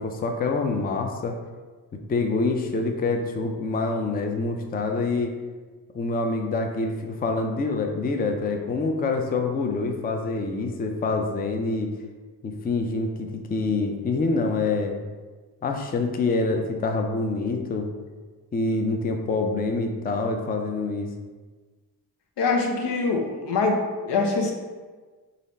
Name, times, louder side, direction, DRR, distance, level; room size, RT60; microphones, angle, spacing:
voice 1, 0.0-1.4 2.1-5.3 5.9-11.9 12.4-14.9 15.6-17.9 18.5-21.1, left 3 dB, 25° left, 3 dB, 0.4 m, -26 dB
voice 2, 22.4-23.8 24.1-24.5, left 4 dB, 90° left, 1 dB, 0.9 m, -23 dB
4.0 x 3.2 x 4.2 m, 1.4 s
cardioid pair, 120°, 40 cm